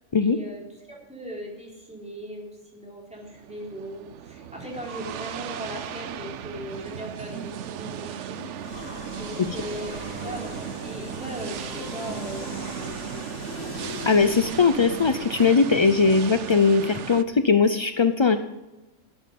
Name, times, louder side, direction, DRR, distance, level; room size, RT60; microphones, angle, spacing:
voice 1, 0.2-8.4 9.2-13.4, right 1 dB, 5° right, -3 dB, 3.9 m, -39 dB
sound 1, 3.2-17.2, right 9 dB, 70° right, 0.9 m, -36 dB
sound 2, 8.6-15.5, left 4 dB, 90° left, 1.6 m, -39 dB
voice 2, 14.1-18.4, left 5 dB, 50° left, 9 dB, 0.3 m, -20 dB
11.5 x 11.5 x 5.3 m, 1.0 s
omnidirectional pair, 1.3 m